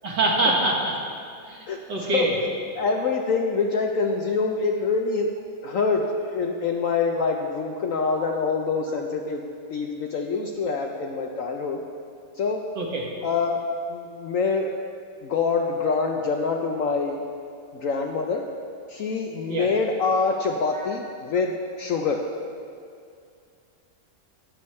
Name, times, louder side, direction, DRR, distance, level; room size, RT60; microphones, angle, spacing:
voice 1, 0.0-0.9 1.4-2.4 12.8-13.0 19.5-19.7 20.7-20.9, right 2 dB, 75° right, -2 dB, 2.2 m, -25 dB
voice 2, 1.7-2.3 2.8-5.3 5.6-9.4 9.7-11.8 12.4-12.6 13.2-13.6 13.9-14.7 15.2-17.2 17.7-18.4 18.9-22.2, left 4 dB, 65° left, 2 dB, 0.8 m, -25 dB
19.0 x 7.0 x 3.2 m, 2.3 s
omnidirectional pair, 1.9 m